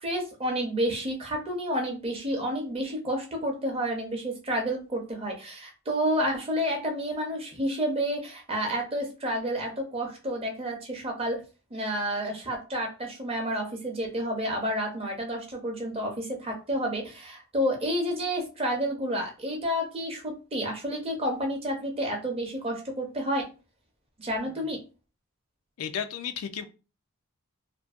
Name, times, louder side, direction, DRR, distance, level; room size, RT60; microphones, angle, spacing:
voice 1, 0.0-11.4 11.7-23.4 24.2-24.8, equal, 25° right, 0.6 m, -30 dB
voice 2, 25.8-26.7, left 8 dB, 70° left, 0.3 m, -34 dB
2.6 x 2.5 x 2.4 m
head